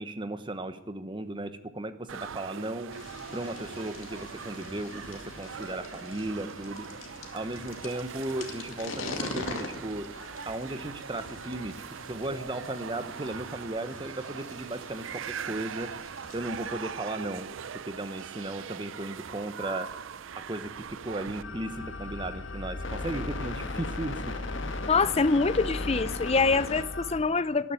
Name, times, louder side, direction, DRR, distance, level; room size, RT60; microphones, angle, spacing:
voice 1, 0.0-2.9 3.3-6.9 7.3-10.1 10.4-11.7 12.0-15.9 16.3-17.5 17.9-19.9 20.4-24.3, right 1 dB, 25° right, 11 dB, 1.0 m, -36 dB
sound 1, 2.1-21.4, right 7 dB, 70° right, 0.5 m, -41 dB
sound 2, 2.9-16.9, left 3 dB, 85° left, 2.3 m, -43 dB
sound 3, 21.4-27.2, left 2 dB, 65° left, 1.7 m, -35 dB
voice 2, 24.9-27.7, left 4 dB, 30° left, 16 dB, 0.6 m, -25 dB
12.5 x 11.0 x 9.1 m, 0.85 s
head